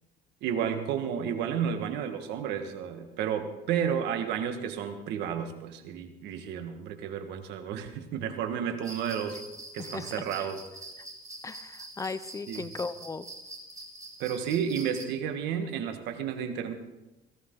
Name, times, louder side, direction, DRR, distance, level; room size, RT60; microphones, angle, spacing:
voice 1, 0.4-9.4 9.7-10.6 12.5-12.7 14.2-16.7, right 8 dB, 90° right, 7 dB, 1.6 m, -32 dB
sound 1, 8.8-15.1, right 2 dB, 20° right, 2.3 m, -45 dB
voice 2, 9.8-10.5 11.4-13.3, left 4 dB, 20° left, 14 dB, 0.6 m, -37 dB
17.5 x 15.0 x 3.9 m, 0.99 s
cardioid pair, 110°, 17 cm